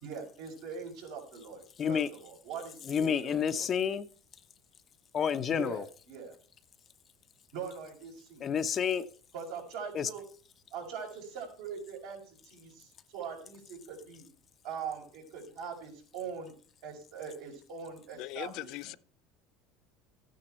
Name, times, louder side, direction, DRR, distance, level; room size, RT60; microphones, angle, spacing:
voice 1, 0.0-3.7 5.5-6.3 7.5-8.5 9.3-10.2 10.7-14.3 14.6-16.6 16.8-18.9, right 6 dB, 75° right, 5.2 m, -42 dB
voice 2, 1.8-2.1 2.9-4.1 5.1-5.8 8.4-9.0 9.9-10.1, left 7 dB, 40° left, 0.9 m, -29 dB
voice 3, 18.2-18.9, left 16 dB, 65° left, 0.4 m, -40 dB
13.5 x 9.4 x 4.4 m
supercardioid pair, 100°, 0 cm